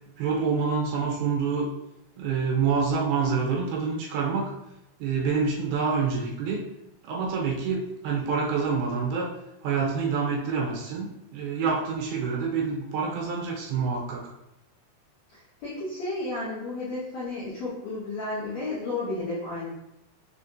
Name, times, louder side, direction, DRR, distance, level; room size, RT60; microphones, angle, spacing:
voice 1, 0.2-1.7 2.2-4.5 5.0-6.6 7.0-9.3 9.6-14.2, right 5 dB, 80° right, -2 dB, 2.4 m, -27 dB
voice 2, 15.3-19.7, left 2 dB, 80° left, -9 dB, 1.5 m, -32 dB
6.4 x 2.4 x 2.7 m, 0.87 s
omnidirectional pair, 4.6 m